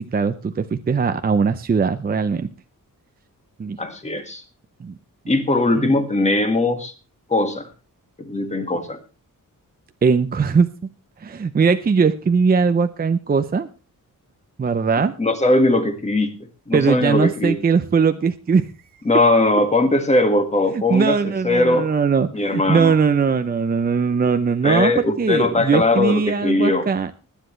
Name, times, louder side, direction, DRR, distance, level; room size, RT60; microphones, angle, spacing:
voice 1, 0.0-2.5 3.6-3.8 4.8-5.0 5.8-5.9 10.0-10.7 11.2-13.7 14.6-15.2 16.7-18.7 20.7-27.1, right 5 dB, 25° right, 9 dB, 0.6 m, -20 dB
voice 2, 3.8-4.4 5.3-6.9 7.3-7.7 8.2-9.0 15.2-17.6 19.0-21.2 21.4-21.9 22.3-23.0 24.6-26.9, left 2 dB, 20° left, 7 dB, 1.8 m, -20 dB
20.0 x 10.0 x 3.2 m, 0.32 s
wide cardioid pair, 160°, 34 cm